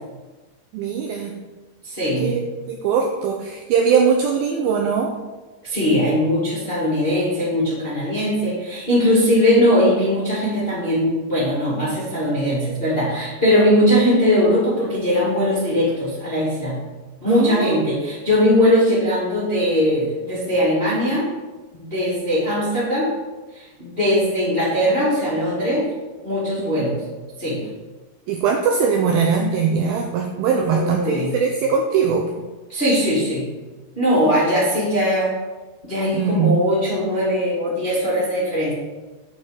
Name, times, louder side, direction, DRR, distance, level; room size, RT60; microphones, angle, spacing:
voice 1, 0.7-1.3 2.2-5.1 17.3-17.9 26.6-26.7 28.3-32.3 36.1-36.7, right 6 dB, 80° right, 1 dB, 2.1 m, -21 dB
voice 2, 1.8-2.3 5.6-16.8 17.2-21.2 21.7-23.1 23.5-25.8 26.2-27.0 27.4-27.6 30.6-31.3 32.7-33.4 33.9-35.3 35.8-38.7, equal, 25° left, -8 dB, 1.3 m, -20 dB
8.7 x 4.4 x 6.3 m, 1.2 s
omnidirectional pair, 4.9 m